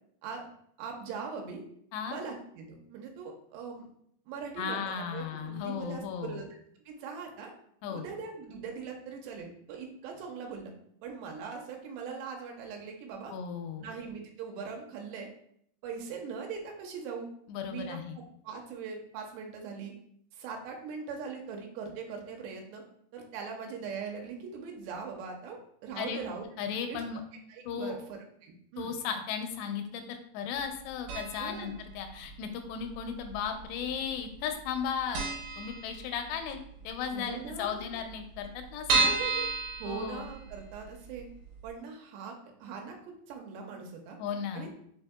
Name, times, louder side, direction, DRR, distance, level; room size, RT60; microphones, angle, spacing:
voice 1, 0.8-1.6 2.1-3.9 4.3-6.5 6.9-7.5 7.9-10.7 11.0-13.3 13.8-15.3 15.8-17.3 17.7-19.9 20.3-22.8 23.1-26.4 26.9-27.0 27.5-28.9 31.4-31.8 37.1-38.0 38.9-39.5 39.8-41.3 41.6-42.4 42.6-44.2 44.5-44.7, right 5 dB, 90° right, 1 dB, 2.8 m, -41 dB
voice 2, 4.6-6.4 7.8-8.1 13.3-13.9 17.5-18.2 26.0-26.3 26.6-27.2 27.7-28.0 28.8-35.3 35.6-36.6 36.8-39.2 39.8-40.2 44.2-44.7, left 7 dB, 85° left, 5 dB, 2.6 m, -36 dB
sound 1, 31.1-31.6 31.9-32.0 32.9-33.6 33.9-34.1 34.3-34.4 34.8-34.9 35.1-36.5 36.8-36.9 37.2-37.3 37.5-37.6 38.1-40.7 41.2-41.3 41.6-41.7, right 3 dB, 75° right, 2.0 m, -31 dB
6.1 x 3.5 x 2.2 m, 0.68 s
omnidirectional pair, 4.8 m